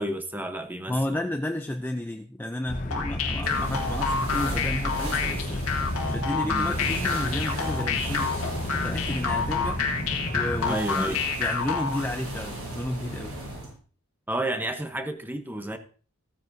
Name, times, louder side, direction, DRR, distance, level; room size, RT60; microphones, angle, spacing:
voice 1, 0.0-1.2 6.4-6.7 10.6-11.2 14.3-15.8, right 1 dB, 10° right, 7 dB, 0.9 m, -31 dB
voice 2, 0.9-5.7 6.1-8.3 8.7-9.9 10.3-13.4, left 1 dB, 10° left, 6 dB, 0.4 m, -32 dB
sound 1, 2.7-10.7, left 1 dB, 35° left, 0.8 m, -32 dB
sound 2, 2.9-12.1, left 5 dB, 90° left, 1.9 m, -28 dB
sound 3, 3.4-13.7, right 1 dB, 85° right, 6.4 m, -37 dB
15.0 x 9.3 x 2.7 m, 0.39 s
head